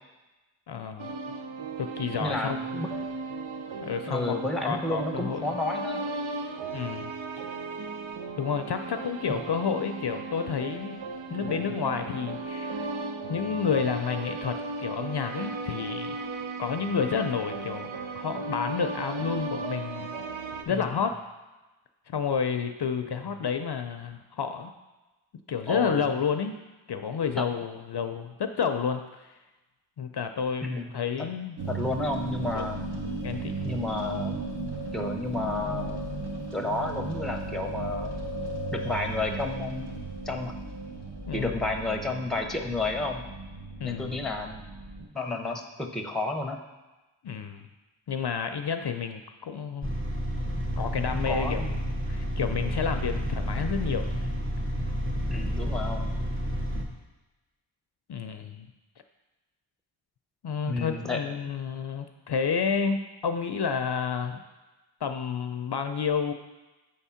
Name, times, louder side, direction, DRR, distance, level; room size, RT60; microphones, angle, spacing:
voice 1, 0.7-1.2 1.8-2.8 3.8-4.3 4.6-5.5 6.7-7.5 8.4-11.0 11.3-12.9 13.3-16.2 16.6-17.9 18.2-20.1 20.7-21.2 22.1-24.7 25.5-26.6 26.9-29.3 30.0-31.6 32.5-32.9 33.2-33.6 41.3-41.5 43.8-44.3 47.2-47.7 48.1-49.9 50.8-51.7 52.1-54.2 58.1-58.7 60.4-64.4 65.0-66.3, left 6 dB, 60° left, 7 dB, 0.5 m, -30 dB
sound 1, 1.0-20.6, right 3 dB, 80° right, 0.6 m, -36 dB
voice 2, 2.2-2.9 4.1-6.0 9.3-9.4 11.3-11.7 20.7-21.0 23.1-23.3 25.7-26.1 27.4-27.5 30.6-30.9 31.2-31.3 31.7-32.8 33.6-34.4 34.9-36.0 36.5-38.1 38.7-40.0 40.3-40.5 41.3-43.3 43.8-44.6 45.1-46.6 51.1-51.7 52.6-52.8 55.3-56.1 60.7-61.4, left 2 dB, ahead, 3 dB, 0.7 m, -31 dB
sound 2, 31.6-45.0, right 3 dB, 60° right, 1.3 m, -35 dB
sound 3, 49.8-56.8, equal, 25° right, 1.1 m, -30 dB
7.6 x 3.6 x 5.6 m, 1.1 s
wide cardioid pair, 65°, 47 cm